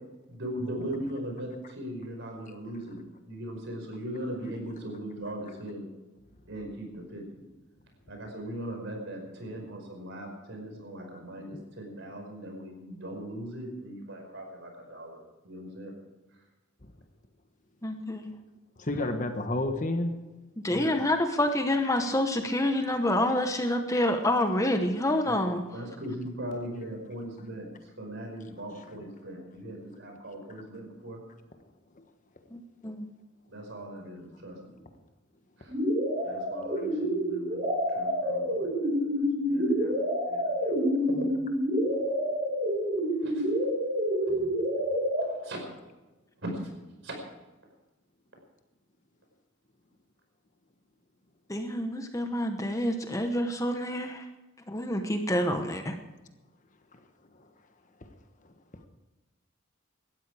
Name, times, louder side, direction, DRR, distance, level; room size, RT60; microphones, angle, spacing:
voice 1, 0.3-3.0 3.2-5.9 6.5-7.4 8.1-15.9 20.7-21.0 25.2-25.3 25.7-31.2 33.5-34.8 35.6-35.7 36.2-37.6 37.9-39.9 40.3-41.3 43.2-43.5 44.2-44.3 45.2-45.6 46.4-46.5 47.0-47.2, right 1 dB, 60° right, 3 dB, 5.2 m, -39 dB
voice 2, 17.8-18.3 20.6-25.6 32.5-33.1 51.5-54.3 54.7-56.0, left 1 dB, 15° left, 6 dB, 1.0 m, -27 dB
voice 3, 18.8-20.1 29.0-29.1 31.9-32.0 44.3-44.5 56.9-57.0 57.4-57.5 58.0-58.1 58.7-58.8, left 1 dB, 35° left, 7 dB, 1.3 m, -31 dB
sound 1, 35.7-45.2, equal, 30° right, 6.8 m, -28 dB
18.0 x 13.0 x 4.9 m, 1.1 s
head